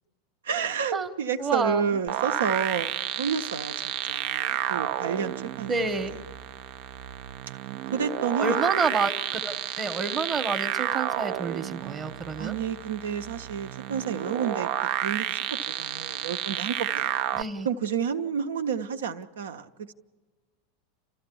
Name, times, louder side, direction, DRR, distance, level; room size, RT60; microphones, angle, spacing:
voice 1, 0.4-3.7 4.1-5.7 7.9-8.6 12.4-14.7 15.0-17.1 17.6-19.9, right 7 dB, 75° right, 7 dB, 0.9 m, -30 dB
voice 2, 1.4-2.0 5.7-6.1 8.4-12.5 17.3-17.7, right 4 dB, 30° right, 8 dB, 1.1 m, -29 dB
sound 1, 2.1-17.4, right 12 dB, 55° right, 0.5 m, -31 dB
30.0 x 13.5 x 7.0 m, 1.3 s
figure-of-eight pair, 90°, 0 cm